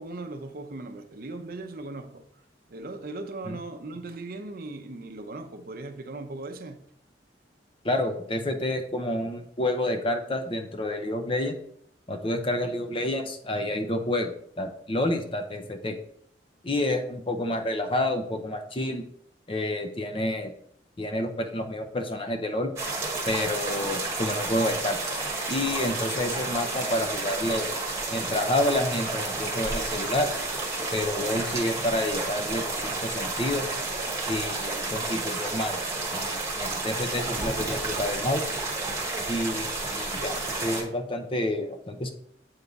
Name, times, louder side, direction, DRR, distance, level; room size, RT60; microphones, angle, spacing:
voice 1, 0.0-2.3 2.7-6.9 12.6-12.7, right 2 dB, 55° right, 0.6 m, -38 dB
voice 2, 7.8-11.6 12.1-16.0 16.6-19.0 19.5-20.5 21.0-22.7 23.3-25.0 25.5-27.7 28.1-30.3 30.9-33.7 34.3-35.8 36.1-38.4 39.3-42.1, left 1 dB, 30° left, 0.6 m, -29 dB
sound 1, 22.8-40.8, right 3 dB, 15° right, 1.2 m, -31 dB
8.0 x 3.5 x 4.0 m
head